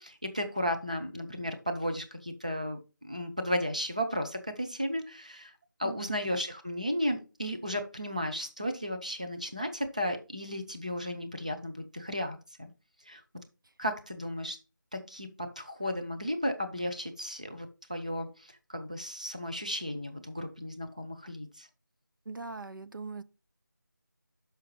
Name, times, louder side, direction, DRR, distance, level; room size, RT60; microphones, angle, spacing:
voice 1, 0.0-12.7 13.0-13.2 13.8-14.6 14.9-21.7, equal, 20° right, 0.5 m, -34 dB
voice 2, 5.8-6.2 22.3-23.2, right 3 dB, 90° right, 0.7 m, -41 dB
6.2 x 5.7 x 4.6 m
figure-of-eight pair, 180°, 11 cm